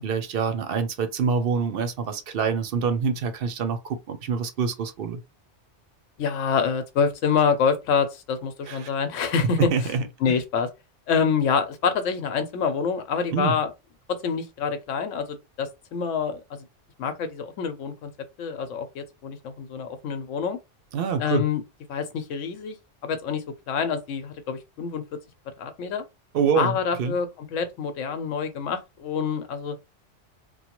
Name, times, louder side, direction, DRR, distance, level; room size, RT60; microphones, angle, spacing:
voice 1, 0.0-5.2 8.7-8.9 9.7-10.1 13.3-13.5 20.9-21.4 26.3-27.1, right 5 dB, 60° right, 0.6 m, -26 dB
voice 2, 6.2-9.9 10.2-10.7 11.1-13.7 14.2-16.7 17.0-18.1 18.4-20.6 21.2-21.6 21.9-22.8 23.0-25.0 25.6-26.0 26.5-29.8, left 6 dB, 85° left, 1.0 m, -26 dB
3.0 x 2.2 x 2.9 m
omnidirectional pair, 1.3 m